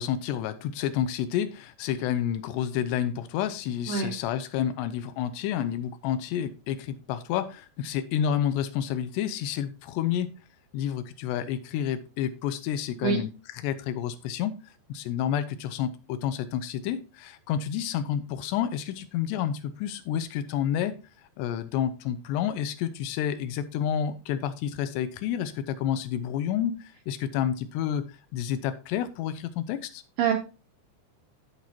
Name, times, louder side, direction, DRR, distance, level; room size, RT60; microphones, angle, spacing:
voice 1, 0.0-10.3 10.7-14.6 14.9-21.0 21.4-30.0, left 9 dB, 85° left, 12 dB, 2.7 m, -29 dB
voice 2, 3.9-4.1 13.0-13.2 30.2-30.3, right 7 dB, 80° right, 2 dB, 2.1 m, -24 dB
14.0 x 4.8 x 2.8 m, 0.31 s
omnidirectional pair, 5.0 m